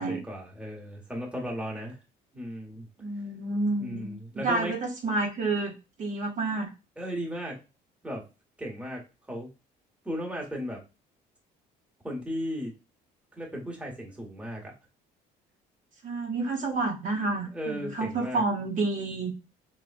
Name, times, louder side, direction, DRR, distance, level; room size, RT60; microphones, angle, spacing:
voice 1, 0.0-2.0 2.3-2.9 3.8-4.7 7.0-7.6 8.0-8.2 8.6-9.0 9.3-9.5 10.0-10.8 12.0-12.7 13.3-14.7 17.5-18.4, equal, 5° right, -2 dB, 1.1 m, -35 dB
voice 2, 3.0-5.7 6.0-6.7 16.0-19.3, right 3 dB, 50° right, 0 dB, 0.8 m, -29 dB
3.4 x 2.1 x 2.4 m, 0.28 s
cardioid pair, 110°, 17 cm